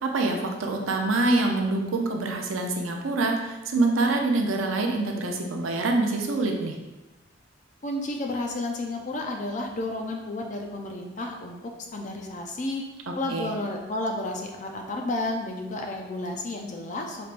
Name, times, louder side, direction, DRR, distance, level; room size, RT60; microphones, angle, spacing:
voice 1, 0.0-6.8 13.3-13.5, right 2 dB, 85° right, 2 dB, 0.6 m, -25 dB
voice 2, 7.8-11.6 11.9-12.8 13.1-17.2, left 2 dB, 40° left, 2 dB, 0.5 m, -31 dB
4.2 x 3.4 x 2.5 m, 1.1 s
head